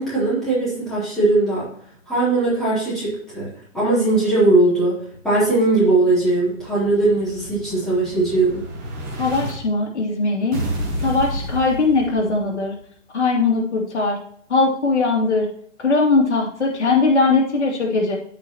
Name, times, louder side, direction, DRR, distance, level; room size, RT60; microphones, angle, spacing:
voice 1, 0.0-1.7 2.1-8.6, right 2 dB, ahead, -12 dB, 3.5 m, -19 dB
Explosion, 6.2-9.5 10.5-12.5, right 1 dB, 15° right, 1.4 m, -30 dB
voice 2, 9.2-10.6 11.0-12.7 13.1-14.2 14.5-15.5 15.8-18.2, left 3 dB, 60° left, -1 dB, 2.8 m, -20 dB
9.1 x 8.8 x 3.1 m, 0.63 s
hypercardioid pair, 165°, 38 cm